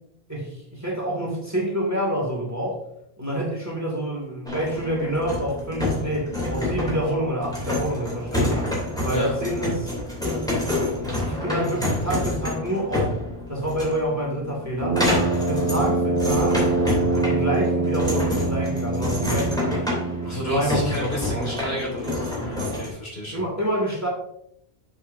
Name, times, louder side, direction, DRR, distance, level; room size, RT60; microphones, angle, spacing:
voice 1, 0.3-2.8 3.2-8.7 9.0-9.9 11.2-13.1 13.5-15.0 15.3-16.6 17.1-19.9 20.5-21.5 23.3-24.1, right 1 dB, 15° right, -3 dB, 2.2 m, -27 dB
sound 1, 4.5-22.9, left 1 dB, 5° left, 3.0 m, -28 dB
Brass instrument, 14.8-20.7, right 3 dB, 40° right, 0.7 m, -25 dB
voice 2, 20.2-23.3, equal, 70° left, -3 dB, 3.3 m, -31 dB
7.5 x 7.1 x 2.7 m, 0.73 s
omnidirectional pair, 1.1 m